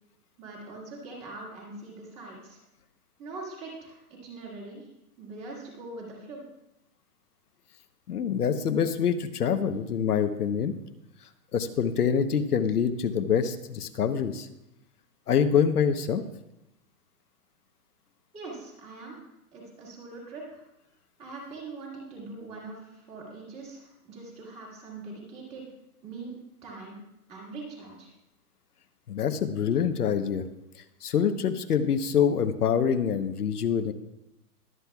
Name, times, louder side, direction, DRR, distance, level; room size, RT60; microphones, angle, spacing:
voice 1, 0.4-2.6 3.2-4.9 5.2-6.4 18.3-19.2 19.5-20.6 21.2-25.7 26.0-26.3 26.6-27.0 27.3-28.1, right 3 dB, 15° right, -3 dB, 1.8 m, -42 dB
voice 2, 8.1-10.7 11.5-14.5 15.3-16.2 29.1-30.4 31.0-33.9, left 7 dB, 85° left, 8 dB, 1.0 m, -25 dB
22.0 x 7.7 x 2.3 m, 0.89 s
hypercardioid pair, 165°, 45 cm